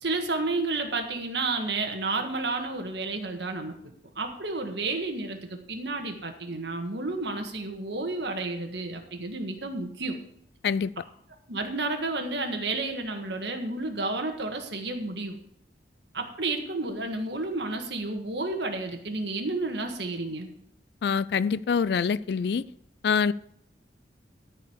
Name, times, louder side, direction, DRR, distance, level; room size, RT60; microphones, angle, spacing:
voice 1, 0.0-10.2 11.5-15.4 16.1-20.5, right 3 dB, 65° right, 1.6 m, -31 dB
voice 2, 21.0-22.6 23.0-23.3, left 6 dB, 60° left, 0.3 m, -25 dB
13.5 x 4.8 x 7.1 m
head